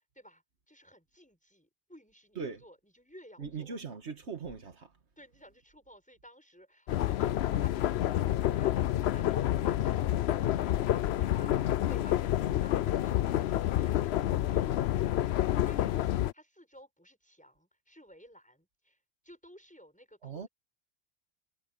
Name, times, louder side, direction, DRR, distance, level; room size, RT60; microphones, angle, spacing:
voice 1, 0.2-3.8 5.2-15.1 15.4-19.0 19.2-20.5, equal, 5° left, 7.5 m, -55 dB
voice 2, 3.4-4.9 20.2-20.5, right 5 dB, 75° right, 1.8 m, -40 dB
sound 1, 6.9-16.3, left 12 dB, 70° left, 0.8 m, -28 dB
omnidirectional pair, 1.2 m